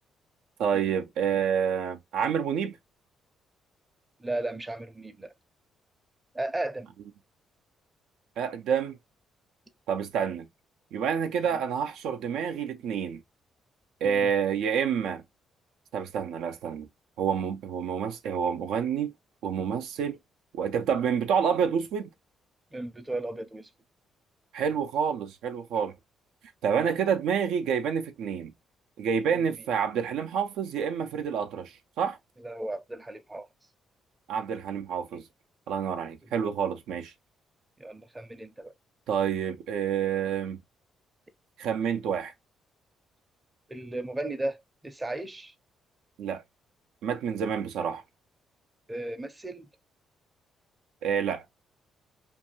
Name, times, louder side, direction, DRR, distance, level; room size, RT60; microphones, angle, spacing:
voice 1, 0.6-2.8 8.4-9.0 9.9-10.5 10.9-13.2 14.0-15.2 15.9-16.9 17.2-19.1 19.4-20.2 20.5-22.1 24.5-25.9 26.6-28.5 29.0-32.2 34.3-35.2 35.7-37.1 39.1-40.6 41.6-42.3 46.2-46.4 47.0-48.0 51.0-51.4, right 7 dB, 85° right, 0.4 m, -28 dB
voice 2, 4.2-5.3 6.3-6.9 11.5-11.6 14.0-14.3 22.7-23.7 26.7-26.9 32.4-33.5 37.8-38.7 43.7-45.5 48.9-49.7, right 2 dB, 15° right, 0.5 m, -35 dB
2.5 x 2.3 x 2.8 m
cardioid pair, 90°, 0 cm